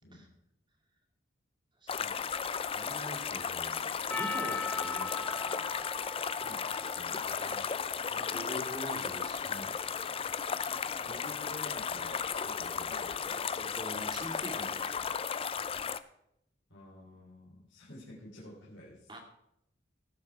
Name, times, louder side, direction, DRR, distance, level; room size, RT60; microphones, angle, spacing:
voice 1, 1.8-2.3 2.7-5.6 7.4-10.0 13.6-15.1 19.1-19.2, equal, 25° right, 1 dB, 2.2 m, -45 dB
sound 1, 1.9-16.0, left 6 dB, 30° left, 0.4 m, -35 dB
Percussion, 4.1-8.6, left 3 dB, 10° left, 0.7 m, -40 dB
voice 2, 6.4-7.4 11.0-13.4 16.7-19.1, left 1 dB, 65° left, -5 dB, 3.4 m, -50 dB
17.5 x 7.2 x 4.7 m, 0.79 s
head